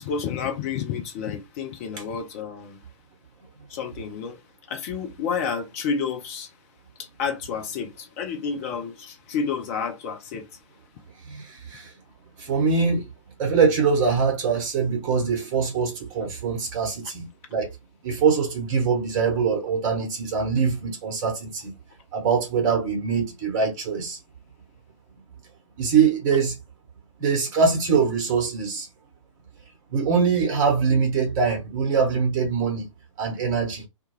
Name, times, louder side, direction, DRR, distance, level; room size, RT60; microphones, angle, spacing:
voice 1, 0.0-2.8 3.7-4.4 4.7-6.5 7.0-10.6, left 6 dB, 25° left, 0.5 m, -30 dB
voice 2, 11.3-11.9 12.4-13.0 13.4-17.7 18.0-21.7 22.1-24.2 25.8-26.6 27.2-28.9 29.9-32.9 33.2-33.9, right 5 dB, 25° right, 1.0 m, -23 dB
2.2 x 2.2 x 3.1 m
figure-of-eight pair, 125°, 16 cm